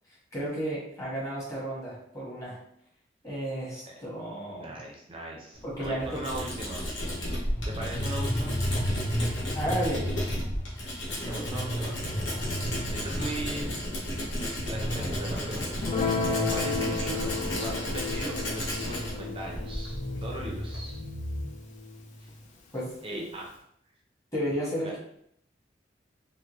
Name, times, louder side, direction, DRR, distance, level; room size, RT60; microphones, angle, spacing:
voice 1, 0.3-2.6 3.2-4.8 5.6-6.4 9.5-10.1 22.7-23.2 24.3-25.0, equal, 15° left, -7 dB, 1.3 m, -33 dB
voice 2, 4.5-6.8 7.6-8.5 11.2-12.0 12.6-13.8 14.3-21.0 23.0-23.5 24.8-24.9, right 1 dB, 30° right, -1 dB, 0.6 m, -39 dB
Tools, 5.5-20.9, left 1 dB, 90° left, 1.0 m, -34 dB
sound 1, 7.5-14.0 14.3-14.4 14.7-19.3 19.8-21.4, equal, 60° left, 0.9 m, -34 dB
Guitar, 15.8-22.4, left 4 dB, 40° left, 0.4 m, -33 dB
3.5 x 2.2 x 3.0 m, 0.71 s
head